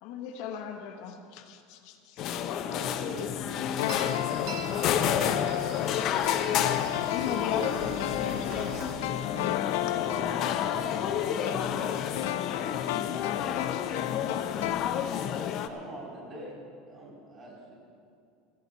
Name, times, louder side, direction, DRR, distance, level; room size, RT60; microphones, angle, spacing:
voice 1, 0.0-2.3 5.5-8.8 9.9-10.0 13.1-14.1, left 7 dB, 60° left, 4 dB, 1.4 m, -39 dB
sound 1, 2.2-15.7, left 9 dB, 40° left, 0.8 m, -30 dB
voice 2, 2.6-3.2 15.6-17.7, equal, 25° right, -4 dB, 4.5 m, -44 dB
sound 2, 3.8-15.4 15.7-15.8, left 14 dB, 80° left, 0.6 m, -34 dB
sound 3, 3.8-8.9, right 5 dB, 60° right, 2.1 m, -44 dB
voice 3, 9.5-12.5, equal, ahead, -4 dB, 1.5 m, -45 dB
16.0 x 15.5 x 4.2 m, 2.4 s
supercardioid pair, 160°, 0 cm